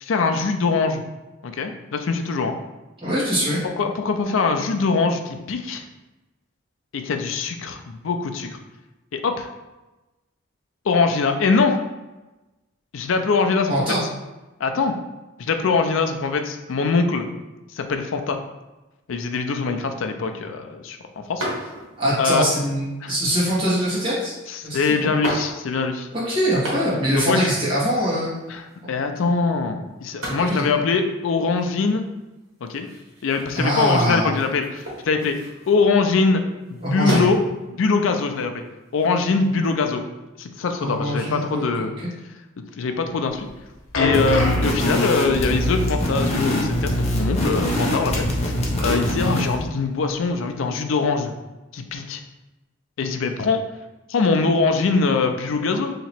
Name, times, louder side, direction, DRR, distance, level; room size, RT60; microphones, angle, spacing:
voice 1, 0.0-1.0 1.4-2.6 3.6-5.8 6.9-8.6 9.1-9.5 10.9-11.8 12.9-14.0 14.6-15.0 15.4-17.2 17.7-18.4 19.1-21.5 22.2-22.5 23.0-23.1 24.5-26.1 27.2-27.5 28.5-32.0 32.6-32.9 33.2-35.4 35.7-36.4 36.7-37.4 37.7-38.6 38.9-40.0 40.4-41.9 42.8-43.5 44.0-48.5 48.8-51.4 51.7-52.2 53.0-53.6 54.1-55.9, left 4 dB, 75° left, 6 dB, 0.4 m, -22 dB
voice 2, 3.0-3.6 13.7-14.0 22.0-24.4 24.6-25.1 26.1-28.4 28.8-28.9 29.2-29.3 30.3-30.7 33.5-34.4 36.8-37.3 40.8-42.1, equal, 25° right, -8 dB, 1.4 m, -23 dB
sound 1, 21.4-22.1 22.8-23.4 24.4-24.5 25.1-26.0 26.4-27.2 27.5-27.6 27.7-28.8 30.0-36.2 36.6-37.5 37.9-39.7, right 1 dB, 80° right, 1.4 m, -34 dB
sound 2, 43.3-48.2 48.5-48.7 49.4-49.5, left 2 dB, 90° left, 0.9 m, -30 dB
sound 3, 44.1-49.6, equal, 30° left, 0.7 m, -23 dB
2.9 x 2.9 x 4.3 m, 1.1 s
head